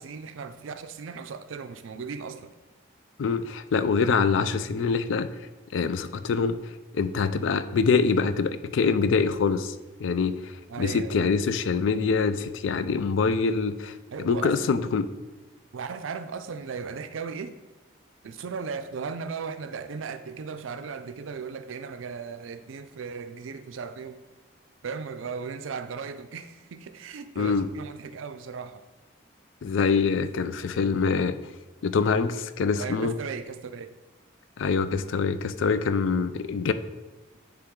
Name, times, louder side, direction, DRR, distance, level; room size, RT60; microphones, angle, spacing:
voice 1, 0.0-2.5 10.7-11.4 14.1-14.5 15.7-17.6 18.2-24.2 24.8-28.8 32.8-33.9, right 5 dB, 85° right, 0.4 m, -37 dB
voice 2, 3.2-5.3 5.7-6.6 6.9-9.7 10.0-10.5 10.8-13.9 14.2-15.1 27.4-27.7 29.6-31.4 31.8-33.1 34.6-36.7, left 5 dB, 75° left, 0.4 m, -24 dB
9.9 x 3.4 x 3.7 m
head